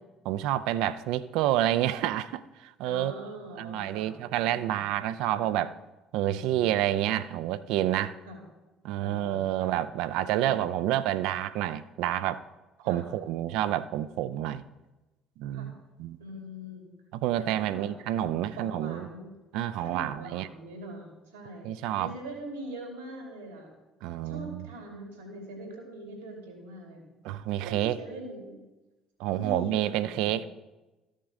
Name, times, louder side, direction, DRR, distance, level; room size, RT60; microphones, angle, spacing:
voice 1, 0.3-3.1 3.6-5.7 6.1-8.2 8.8-12.4 12.8-14.6 15.4-16.2 17.1-19.1 19.5-20.5 21.6-22.1 24.0-24.7 27.2-28.0 29.2-30.4, right 12 dB, 65° right, 0.3 m, -29 dB
voice 2, 2.8-4.9 5.3-5.5 8.3-8.4 9.0-9.7 10.3-10.8 12.8-13.0 15.5-15.7 16.2-16.9 17.4-17.9 18.6-19.3 19.8-23.7 24.2-27.0 27.6-28.6 29.4-30.5, right 1 dB, 85° right, 2.5 m, -42 dB
13.5 x 6.4 x 3.6 m
hypercardioid pair, 55°, 0 cm